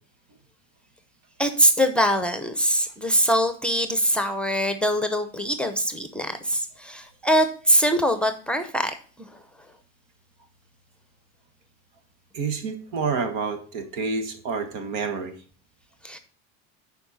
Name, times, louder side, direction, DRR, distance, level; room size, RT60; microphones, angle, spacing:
voice 1, 1.4-8.9 16.0-16.2, equal, 5° left, 8 dB, 0.7 m, -23 dB
voice 2, 12.3-15.3, right 4 dB, 80° right, 7 dB, 1.6 m, -28 dB
10.5 x 4.6 x 4.1 m, 0.43 s
cardioid pair, 125°, 34 cm